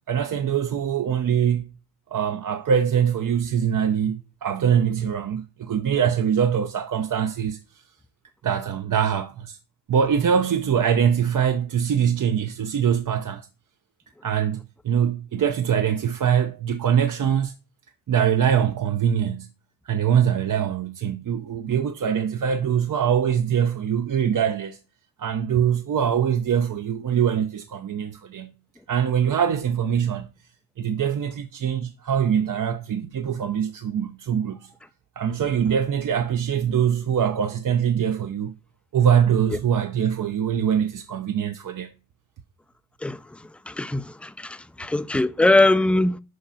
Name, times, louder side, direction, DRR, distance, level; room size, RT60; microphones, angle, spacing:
voice 1, 0.1-1.7 2.1-7.6 8.4-9.6 9.9-13.5 14.2-17.5 18.1-19.5 19.9-24.8 25.2-28.5 28.9-30.3 30.8-34.7 35.2-38.5 38.9-41.9, right 8 dB, 50° right, 0.7 m, -23 dB
voice 2, 43.0-46.2, left 2 dB, 5° left, 0.4 m, -22 dB
6.6 x 5.0 x 5.6 m
cardioid pair, 80°, 39 cm